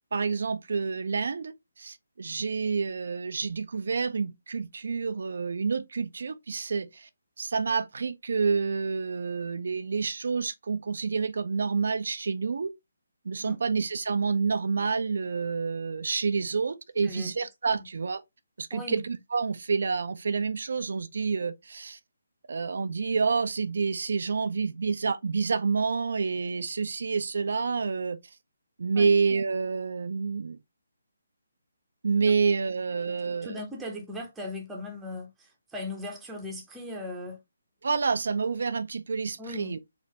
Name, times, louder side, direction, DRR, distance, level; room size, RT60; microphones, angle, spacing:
voice 1, 0.1-7.1 7.4-12.7 13.2-18.2 18.6-22.0 22.5-28.2 28.8-30.6 32.0-33.6 37.8-39.8, right 5 dB, 60° right, 0.5 m, -28 dB
voice 2, 18.7-19.0 28.9-29.1 32.9-37.4 39.4-39.8, left 2 dB, 5° right, 0.9 m, -38 dB
4.3 x 2.7 x 3.2 m
figure-of-eight pair, 145°, 0 cm